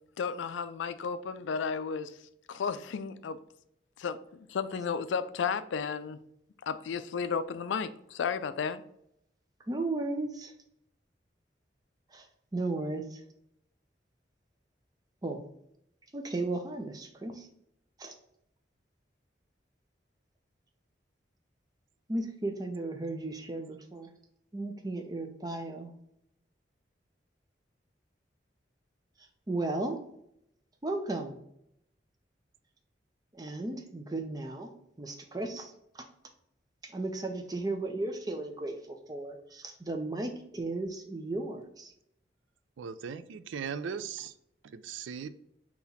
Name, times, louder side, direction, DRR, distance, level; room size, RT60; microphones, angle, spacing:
voice 1, 0.2-2.2 2.5-3.4 4.0-6.2 6.7-8.8, left 6 dB, 85° left, 0.4 m, -33 dB
voice 2, 9.7-10.5 12.1-12.2 12.5-13.2 15.2-15.4 16.1-17.5 18.0-18.1 22.1-24.1 24.5-25.9 29.5-30.0 30.8-31.4 33.3-34.7 35.0-36.1 36.8-41.9, right 2 dB, 20° right, 0.5 m, -35 dB
voice 3, 42.8-44.4 44.6-45.3, right 6 dB, 90° right, 0.4 m, -38 dB
4.0 x 2.9 x 4.1 m
head